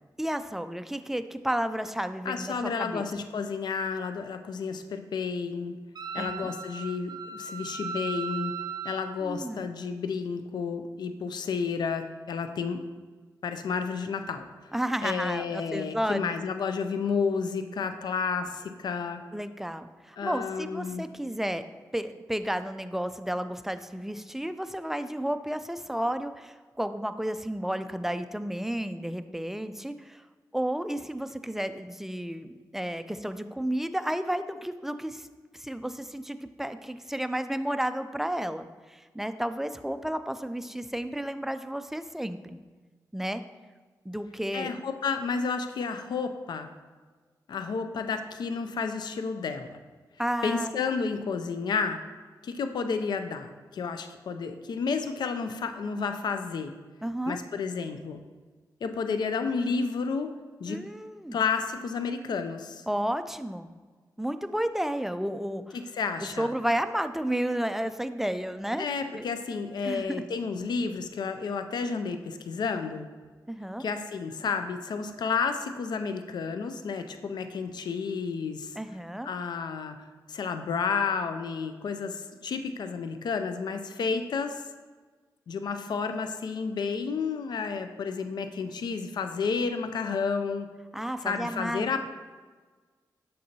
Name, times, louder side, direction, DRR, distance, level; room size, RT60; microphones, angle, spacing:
voice 1, 0.2-3.0 6.2-6.5 9.2-9.7 14.7-16.3 19.3-21.6 21.9-30.2 30.5-35.3 35.6-42.6 43.1-43.4 44.1-44.7 50.2-50.7 57.0-57.4 60.7-61.4 62.9-63.7 64.2-65.8 66.4-68.9 69.1-69.3 69.8-70.3 73.5-73.8 78.8-79.3 90.9-91.8, right 1 dB, 5° right, 10 dB, 0.3 m, -32 dB
voice 2, 2.3-5.8 6.1-8.5 8.8-12.8 13.4-14.4 15.0-19.2 20.2-21.0 44.5-46.7 47.5-49.8 50.4-52.0 52.4-56.7 57.3-58.2 58.8-60.3 60.6-60.8 61.3-62.8 65.7-66.5 68.8-73.1 73.8-78.8 79.2-80.0 80.3-84.6 85.5-90.7 91.2-92.1, left 5 dB, 70° left, 8 dB, 0.4 m, -31 dB
Wind instrument woodwind instrument, 5.9-9.2, right 5 dB, 65° right, 0.5 m, -37 dB
6.5 x 5.4 x 2.8 m, 1.4 s
cardioid pair, 60°, 7 cm